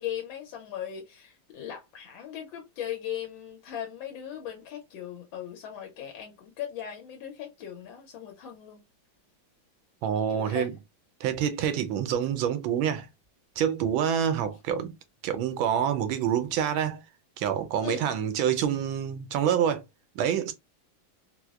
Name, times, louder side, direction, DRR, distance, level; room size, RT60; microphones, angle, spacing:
voice 1, 0.0-8.8 10.3-10.7 17.8-18.1, left 10 dB, 80° left, 1.4 m, -38 dB
voice 2, 10.0-10.7 11.2-13.1 13.6-14.9 15.2-17.0 17.4-19.8 20.2-20.5, right 9 dB, 90° right, 1.4 m, -27 dB
4.5 x 2.0 x 2.3 m
omnidirectional pair, 2.1 m